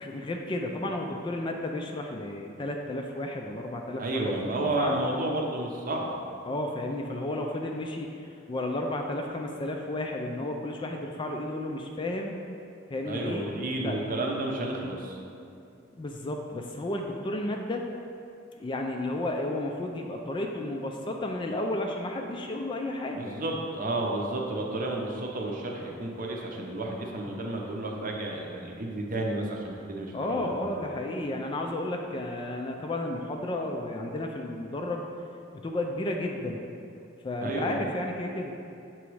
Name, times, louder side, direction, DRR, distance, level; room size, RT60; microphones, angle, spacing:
voice 1, 0.0-4.3 4.6-5.0 6.5-8.1 8.5-12.4 12.9-14.0 15.9-17.8 18.6-23.6 30.1-35.1 35.5-36.6 37.2-38.5, left 1 dB, 25° left, 2 dB, 0.3 m, -32 dB
voice 2, 4.0-6.2 13.1-15.2 23.2-30.8 37.4-37.8, right 2 dB, 45° right, 0 dB, 0.7 m, -31 dB
6.9 x 3.0 x 4.7 m, 2.7 s
head